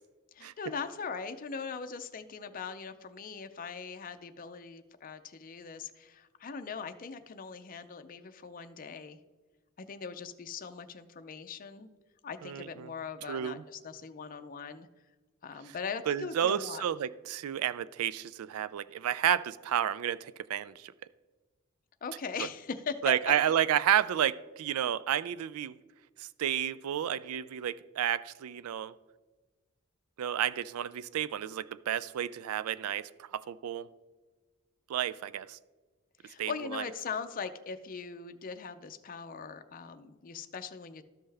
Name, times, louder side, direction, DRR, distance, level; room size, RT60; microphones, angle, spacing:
voice 1, 0.3-9.2 9.8-11.9 12.2-14.9 15.4-16.8 22.0-23.3 36.2-41.0, left 5 dB, 40° left, 8 dB, 0.5 m, -40 dB
voice 2, 12.4-12.9 13.3-13.6 16.1-20.9 23.0-25.7 26.4-28.9 30.2-33.9 34.9-35.6 36.4-36.8, right 10 dB, 85° right, 16 dB, 0.3 m, -31 dB
13.0 x 5.4 x 3.4 m, 1.3 s
head